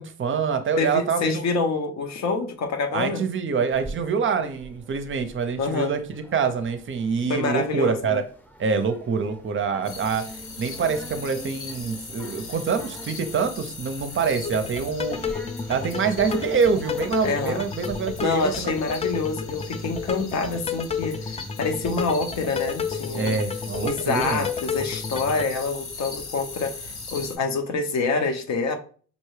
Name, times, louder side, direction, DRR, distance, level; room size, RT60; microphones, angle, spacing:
voice 1, 0.0-1.4 2.9-8.2 8.6-10.2 10.6-15.2 15.7-18.8 23.2-24.4, right 5 dB, 40° right, 9 dB, 0.5 m, -25 dB
voice 2, 0.8-3.2 5.6-5.9 7.3-8.2 17.2-17.6 18.2-23.4 23.8-28.7, left 4 dB, 65° left, 5 dB, 0.8 m, -26 dB
sound 1, 3.7-17.9, equal, 5° left, 0.7 m, -44 dB
sound 2, 9.8-27.4, left 3 dB, 85° left, 1.2 m, -39 dB
sound 3, 14.4-25.4, left 6 dB, 20° left, 0.4 m, -32 dB
5.2 x 2.2 x 3.1 m, 0.43 s
cardioid pair, 90°, 30 cm